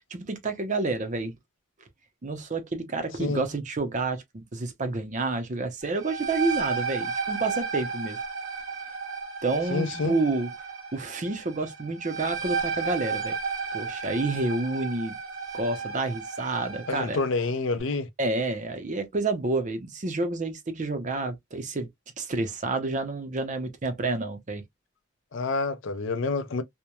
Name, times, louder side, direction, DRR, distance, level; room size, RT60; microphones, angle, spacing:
voice 1, 0.1-1.3 2.2-8.2 9.4-10.5 10.9-13.3 13.7-15.2 15.5-17.2 18.2-21.9 22.2-24.6, right 3 dB, 35° right, 0.5 m, -29 dB
sound 1, 5.8-17.3, right 5 dB, 75° right, 0.8 m, -33 dB
voice 2, 9.7-10.2 16.9-18.1 25.3-26.6, left 3 dB, 60° left, 0.5 m, -28 dB
2.9 x 2.1 x 2.2 m
head